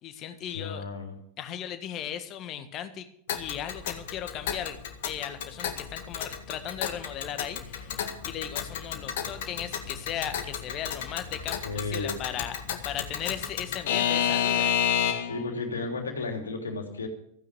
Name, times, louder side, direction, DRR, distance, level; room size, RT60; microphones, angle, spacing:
voice 1, 0.0-0.8 1.4-4.8 5.0-11.6 11.9-14.8, left 10 dB, 35° left, 9 dB, 1.6 m, -37 dB
voice 2, 0.5-1.2 11.6-12.2 15.2-17.1, left 3 dB, 70° left, 3 dB, 3.2 m, -33 dB
Alarm / Clock, 3.3-15.4, left 9 dB, 55° left, 1.9 m, -31 dB
15.5 x 9.5 x 6.9 m, 0.69 s
figure-of-eight pair, 90°, 0 cm